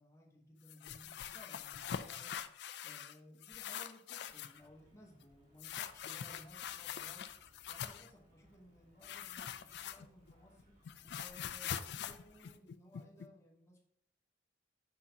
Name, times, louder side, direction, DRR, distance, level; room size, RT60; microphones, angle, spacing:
voice 1, 0.0-2.4 2.8-7.3 7.7-10.8 11.0-13.8, equal, 15° left, -1 dB, 1.0 m, -59 dB
sound 1, 0.7-3.2 3.4-4.6 5.6-8.1 9.0-10.3 10.6-13.3, left 9 dB, 55° left, 0.3 m, -44 dB
sound 2, 4.5-12.5, equal, 45° right, 1.8 m, -68 dB
6.2 x 5.6 x 2.8 m, 0.73 s
head